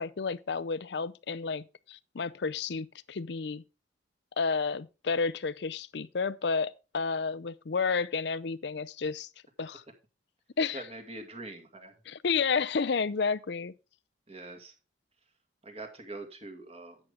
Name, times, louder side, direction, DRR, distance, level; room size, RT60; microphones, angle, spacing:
voice 1, 0.0-3.6 4.4-9.3 9.6-9.8 10.6-10.8 12.1-13.7, left 5 dB, 60° left, 0.5 m, -31 dB
voice 2, 10.7-11.9 14.3-14.7 15.6-17.0, right 2 dB, 30° right, 2.1 m, -43 dB
11.0 x 8.3 x 3.5 m
head